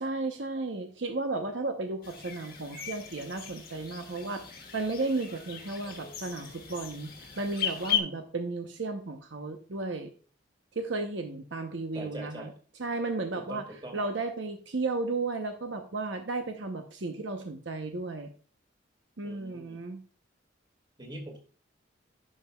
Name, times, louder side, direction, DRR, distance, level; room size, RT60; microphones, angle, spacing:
voice 1, 0.0-10.1 10.7-12.5 12.8-13.6 13.9-18.3 19.2-20.0, right 3 dB, 70° right, 5 dB, 0.8 m, -34 dB
sound 1, 2.0-8.0, left 9 dB, 50° left, 1.4 m, -37 dB
voice 2, 11.9-12.5 13.4-14.0 19.2-19.9 21.0-21.4, right 1 dB, 25° right, 2 dB, 2.0 m, -42 dB
11.0 x 5.6 x 2.3 m, 0.40 s
head